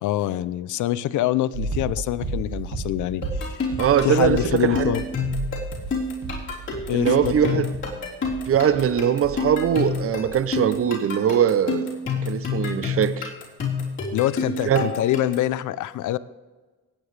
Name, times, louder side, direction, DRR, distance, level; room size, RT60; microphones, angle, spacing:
voice 1, 0.0-3.7 4.0-5.0 6.9-7.7 14.1-16.2, left 14 dB, 75° left, 16 dB, 0.6 m, -25 dB
sound 1, 1.5-10.0 10.2-10.8, right 3 dB, 75° right, 2.5 m, -33 dB
sound 2, 3.2-15.5, left 4 dB, 40° left, 3.8 m, -29 dB
voice 2, 3.8-4.9 6.9-7.7 8.5-11.9 12.2-13.3 14.6-14.9, right 9 dB, 50° right, 13 dB, 0.8 m, -21 dB
19.0 x 8.8 x 3.3 m, 1.3 s
cardioid pair, 90°, 30 cm